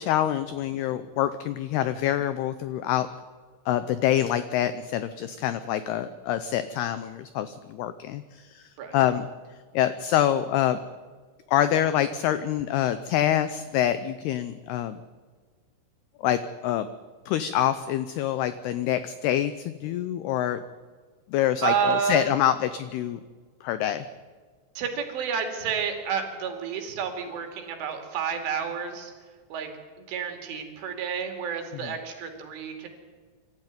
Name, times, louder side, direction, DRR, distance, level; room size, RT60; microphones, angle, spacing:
voice 1, 0.0-3.1 3.7-9.3 9.7-10.8 11.5-15.0 16.2-16.9 17.3-20.6 21.3-23.2 23.6-24.1 31.8-31.9, left 11 dB, 85° left, 12 dB, 2.3 m, -26 dB
voice 2, 21.6-22.3 24.8-29.1 29.5-29.7 30.0-32.9, right 7 dB, 85° right, 5 dB, 5.0 m, -30 dB
25.0 x 13.5 x 9.4 m, 1.5 s
omnidirectional pair, 5.5 m